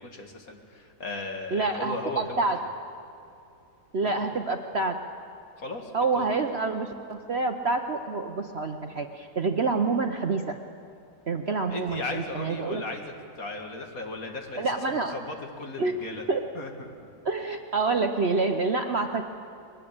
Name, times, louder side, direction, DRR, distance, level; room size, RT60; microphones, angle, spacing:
voice 1, 0.0-2.4 4.0-4.3 5.6-6.4 11.7-16.3 16.5-16.7, left 2 dB, 55° left, 3 dB, 2.5 m, -37 dB
voice 2, 1.5-2.6 3.9-5.0 5.9-10.6 11.3-12.8 14.6-15.1 15.8-16.4 17.2-19.2, right 3 dB, 45° right, 5 dB, 0.9 m, -27 dB
21.5 x 19.0 x 8.8 m, 2.6 s
omnidirectional pair, 1.9 m